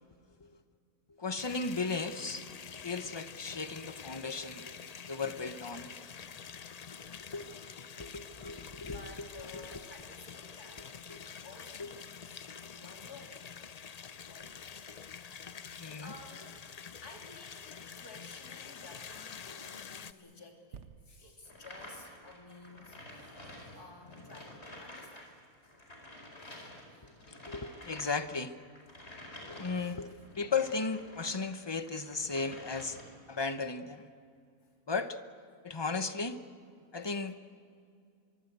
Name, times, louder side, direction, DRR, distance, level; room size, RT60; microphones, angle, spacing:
voice 1, 1.2-2.5 2.8-4.6 5.1-5.9 7.3-7.6 8.0-9.0 9.5-9.6 11.1-11.2 11.8-11.9 14.9-15.0 15.8-16.1 27.0-28.5 29.5-30.1 30.4-33.0 33.3-34.1 34.9-35.2 35.6-36.4 36.9-37.3, left 4 dB, 20° left, 9 dB, 0.8 m, -35 dB
sound 1, 1.4-20.1, left 6 dB, 65° left, 0.3 m, -47 dB
voice 2, 7.3-7.7 8.8-13.4 14.3-14.9 16.0-16.6 17.0-25.4 26.5-27.1 29.8-29.9 34.6-34.7, left 3 dB, 85° left, 2 dB, 3.6 m, -54 dB
sound 2, 20.7-24.3 24.9-25.0, right 6 dB, 55° right, 1.2 m, -56 dB
sound 3, 21.5-31.4 31.8-33.3, left 1 dB, 45° left, 5.0 m, -50 dB
24.5 x 23.0 x 8.2 m, 2.4 s
omnidirectional pair, 1.6 m